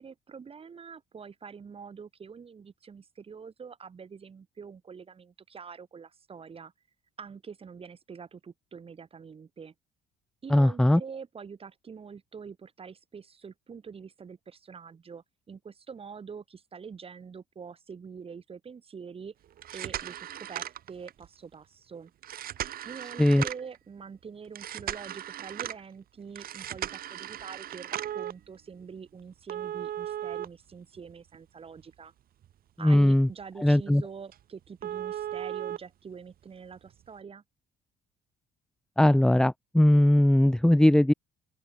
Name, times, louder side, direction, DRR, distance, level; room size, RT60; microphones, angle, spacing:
voice 1, 0.0-6.7 7.2-9.7 10.4-19.3 19.7-22.1 22.8-32.1 32.8-37.4, right 6 dB, 35° right, 6.5 m, -45 dB
voice 2, 10.5-11.0 23.2-23.4 32.8-33.3 33.6-34.0 39.0-41.1, left 1 dB, 5° left, 0.8 m, -20 dB
sound 1, 19.5-21.3 22.2-23.8 24.6-25.8 26.4-28.3 29.5-31.4 31.8-31.9 32.4-32.5 33.0-33.1 33.4-33.5 33.9-34.0 34.3-34.4 34.8-35.8 36.9-37.0, right 11 dB, 60° right, 5.0 m, -36 dB
open air
cardioid pair, 110°, 17 cm